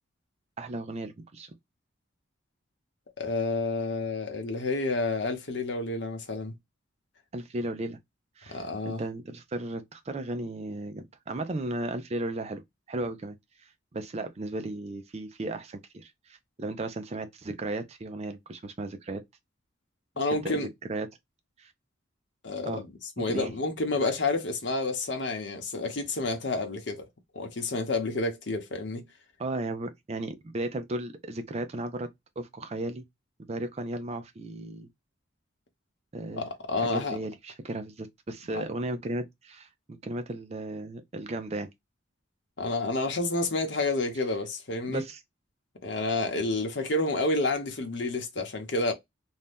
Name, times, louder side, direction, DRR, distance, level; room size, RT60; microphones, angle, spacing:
voice 1, 0.6-1.5 7.3-8.0 8.4-12.6 12.9-13.4 13.6-19.2 20.4-21.1 21.6-21.7 22.7-22.8 23.2-23.5 29.4-32.1 32.4-33.0 33.5-34.9 36.1-36.5 36.8-41.7 44.9-45.2, right 2 dB, 35° right, 0.4 m, -35 dB
voice 2, 3.2-6.5 8.5-9.0 20.2-20.7 22.4-22.9 23.2-27.1 27.3-29.1 36.4-37.2 38.5-38.6 42.6-45.0 45.8-48.9, left 2 dB, 60° left, 0.9 m, -29 dB
2.7 x 2.2 x 3.4 m
head